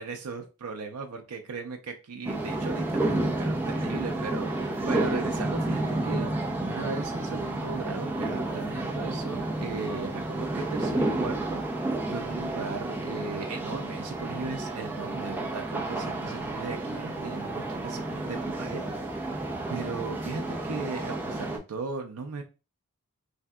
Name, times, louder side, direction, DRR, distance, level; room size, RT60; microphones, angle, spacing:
voice 1, 0.0-19.4 19.7-22.4, right 4 dB, 85° right, 4 dB, 0.5 m, -37 dB
sound 1, 2.2-21.6, right 2 dB, 10° right, 0.4 m, -31 dB
3.3 x 2.6 x 2.3 m, 0.30 s
head